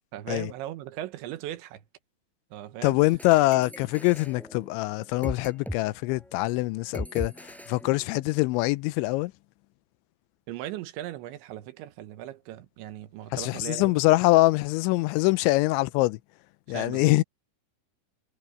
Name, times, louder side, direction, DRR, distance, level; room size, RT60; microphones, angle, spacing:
voice 1, 0.1-1.8 2.5-3.0 10.5-13.9 16.7-17.1, right 13 dB, 85° right, 3.4 m, -38 dB
voice 2, 2.8-7.3 7.7-9.3 13.3-16.2 16.7-17.2, left 20 dB, 85° left, 2.9 m, -24 dB
sound 1, 3.0-5.8 6.1-6.3 6.9-8.5, equal, ahead, 6.3 m, -40 dB
omnidirectional pair, 5.3 m